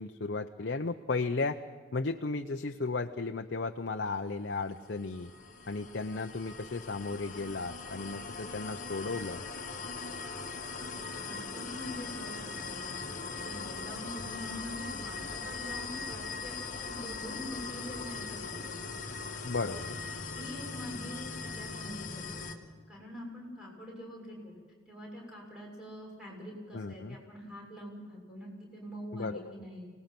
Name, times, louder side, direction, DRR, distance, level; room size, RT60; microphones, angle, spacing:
voice 1, 0.0-1.6 1.9-5.3 5.7-9.4 19.4-20.0 26.7-27.2 29.1-29.5, left 3 dB, 55° left, 5 dB, 0.7 m, -35 dB
sound 1, 4.5-22.5, left 4 dB, 40° left, 1.5 m, -40 dB
voice 2, 11.2-18.8 20.3-22.6 22.9-24.5 24.9-29.9, equal, 5° right, -3 dB, 6.7 m, -44 dB
25.0 x 19.0 x 6.0 m, 1.5 s
head